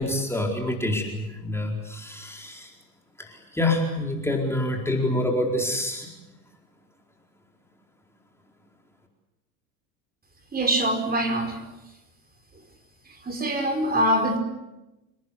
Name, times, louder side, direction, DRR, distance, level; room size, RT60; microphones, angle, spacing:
voice 1, 0.0-2.7 3.2-6.1, left 1 dB, 5° left, 0 dB, 4.4 m, -27 dB
voice 2, 10.5-11.6 13.1-14.4, right 1 dB, 20° right, 4 dB, 5.0 m, -24 dB
29.0 x 19.0 x 8.3 m, 1.0 s
hypercardioid pair, 85°, 46 cm